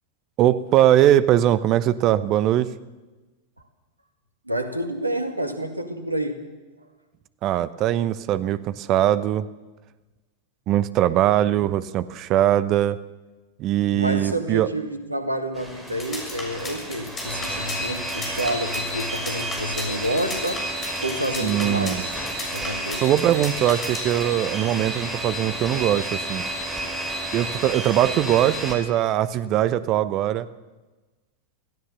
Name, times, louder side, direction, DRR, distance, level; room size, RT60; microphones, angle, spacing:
voice 1, 0.4-2.7 7.4-9.5 10.7-13.0 13.6-14.7 21.4-22.0 23.0-26.4 27.3-30.5, right 12 dB, 35° right, 15 dB, 0.9 m, -21 dB
voice 2, 4.5-6.5 13.9-20.7 21.0-23.1, right 1 dB, 85° right, 7 dB, 2.1 m, -29 dB
sound 1, 15.5-28.7, right 1 dB, 5° right, 5.5 m, -31 dB
sound 2, 15.9-24.2, left 2 dB, 20° left, 6.8 m, -34 dB
24.5 x 16.0 x 6.9 m, 1.2 s
figure-of-eight pair, 90°, 0 cm